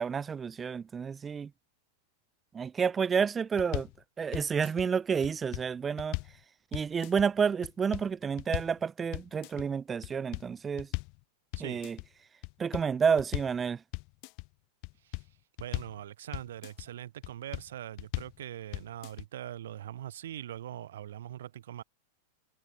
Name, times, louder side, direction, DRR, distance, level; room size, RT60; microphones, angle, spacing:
voice 1, 0.0-1.5 2.5-3.9 4.2-6.2 6.7-10.9 11.6-12.0 12.6-13.8, right 6 dB, 15° right, 0.9 m, -30 dB
sound 1, 3.6-4.0 4.3-4.9 5.2-6.4 6.7-7.3 7.6-8.1 8.4-8.8 9.1-9.7 10.0-11.2 11.5-12.1 12.4-13.6 13.9-14.5 14.8-16.0 16.3-16.9 17.2-17.7 18.0-18.4 18.7-19.3, left 33 dB, 45° left, 1.6 m, -38 dB
voice 2, 15.6-21.8, right 12 dB, 85° right, 0.9 m, -42 dB
supercardioid pair, 155°, 0 cm